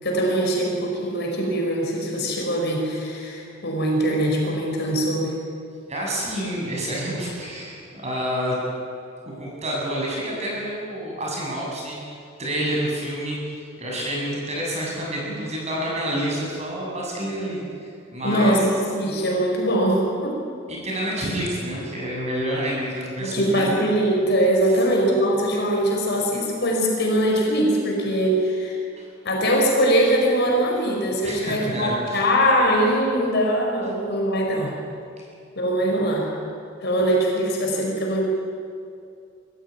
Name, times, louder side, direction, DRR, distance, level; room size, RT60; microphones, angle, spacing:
voice 1, 0.0-5.4 18.2-20.4 23.2-28.8 29.2-34.7 35.6-36.3 36.8-38.2, right 1 dB, 55° left, 0 dB, 5.6 m, -22 dB
voice 2, 5.9-8.6 9.3-12.0 12.4-13.4 13.8-18.6 20.7-23.8 29.0-29.1 31.2-32.2, right 1 dB, 35° right, -3 dB, 7.8 m, -28 dB
24.5 x 15.0 x 9.7 m, 2.5 s
head